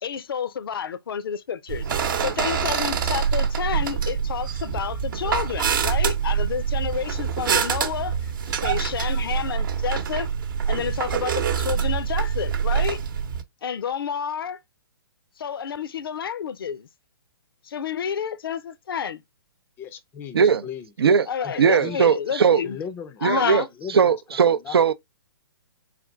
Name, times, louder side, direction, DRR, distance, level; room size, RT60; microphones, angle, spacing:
voice 1, 0.0-8.3 8.6-10.3 10.7-13.0 13.6-14.6 15.4-16.9 17.6-19.2 21.3-22.8 23.2-23.7, left 7 dB, 65° left, 0.5 m, -30 dB
sound 1, 1.7-13.4, right 7 dB, 55° right, 0.8 m, -25 dB
voice 2, 19.8-20.9 21.4-22.0 22.6-23.2 23.8-24.8, left 7 dB, 15° left, 0.4 m, -37 dB
voice 3, 21.6-22.6 23.2-23.6 23.9-24.9, right 6 dB, 75° right, 0.5 m, -19 dB
4.1 x 2.3 x 3.4 m
hypercardioid pair, 130°, 13 cm